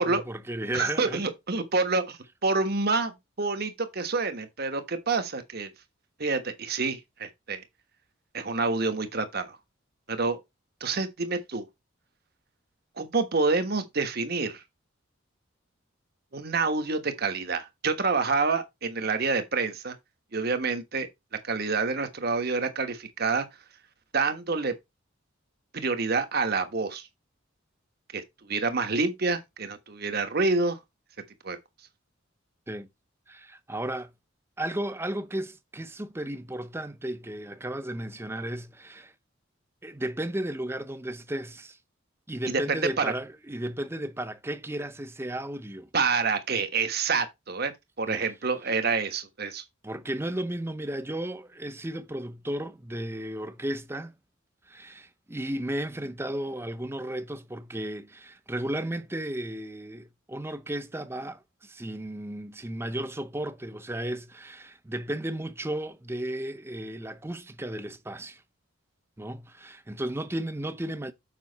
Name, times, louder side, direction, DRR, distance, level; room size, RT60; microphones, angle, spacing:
voice 1, 0.0-1.2 32.7-32.9 33.3-34.1 34.6-39.1 39.8-41.8 42.3-45.9 48.1-48.2 49.8-54.1 54.7-68.4 69.2-71.1, right 1 dB, 10° right, 0.6 m, -34 dB
voice 2, 0.7-5.7 6.2-7.6 8.3-9.6 10.1-10.4 10.8-11.7 13.0-14.6 16.3-19.9 20.3-21.1 21.4-23.5 24.1-24.7 25.7-27.1 28.1-28.2 28.5-30.8 31.4-31.6 42.5-42.6 43.0-43.1 45.9-47.7 48.0-49.6, right 4 dB, 50° right, 1.3 m, -27 dB
7.3 x 5.3 x 4.1 m
head